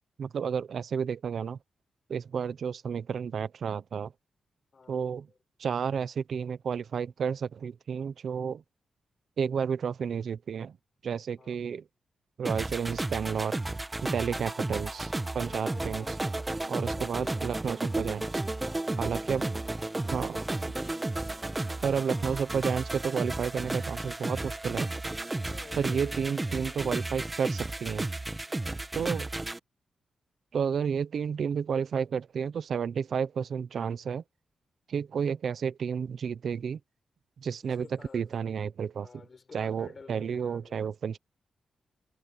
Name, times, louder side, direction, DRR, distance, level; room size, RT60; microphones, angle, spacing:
voice 1, 0.2-1.6 2.1-4.1 4.9-5.3 5.6-8.6 9.4-10.8 11.0-11.8 12.4-13.6 14.0-16.0 16.7-18.3 19.0-19.6 20.1-20.4 21.8-24.9 25.8-28.1 28.9-29.3 30.5-34.2 34.9-36.8 37.4-37.9 38.1-39.1 39.5-41.2, right 7 dB, 65° right, 1.0 m, -31 dB
voice 2, 4.7-5.1 11.4-11.6 15.5-16.2 16.6-17.5 18.6-19.0 25.4-27.4 28.5-28.9 37.6-38.6 38.9-40.8, left 4 dB, 40° left, 4.6 m, -51 dB
sound 1, 12.4-29.6, right 2 dB, 15° right, 1.5 m, -33 dB
wide cardioid pair, 115°, 0 cm